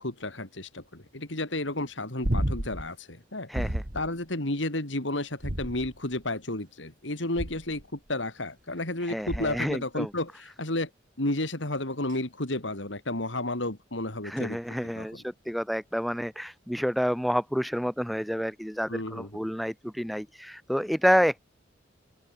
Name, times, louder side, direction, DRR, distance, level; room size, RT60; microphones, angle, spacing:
voice 1, 0.0-10.9 11.2-15.2 18.9-19.3, left 2 dB, 70° left, 4.1 m, -32 dB
sound 1, 2.2-2.9 3.5-4.1 5.4-6.1 7.4-7.8 9.3-9.7 12.1-12.2, right 1 dB, 45° right, 2.5 m, -31 dB
voice 2, 3.5-3.8 9.1-10.1 14.2-21.4, equal, ahead, 0.5 m, -29 dB
open air
head